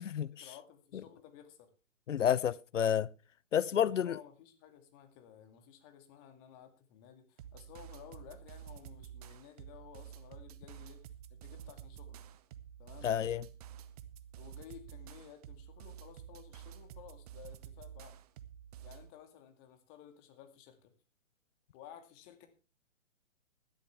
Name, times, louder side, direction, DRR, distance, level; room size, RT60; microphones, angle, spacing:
voice 1, 0.0-1.7 3.7-11.0 11.3-12.2 12.8-13.1 14.3-18.2 18.8-20.9 21.7-22.5, left 10 dB, 25° left, 2.2 m, -55 dB
voice 2, 2.1-3.1 3.5-4.2 13.0-13.4, left 9 dB, 65° left, 0.7 m, -29 dB
sound 1, 7.4-19.1, right 10 dB, 30° right, 0.8 m, -50 dB
16.5 x 11.5 x 3.5 m
figure-of-eight pair, 125°, 39 cm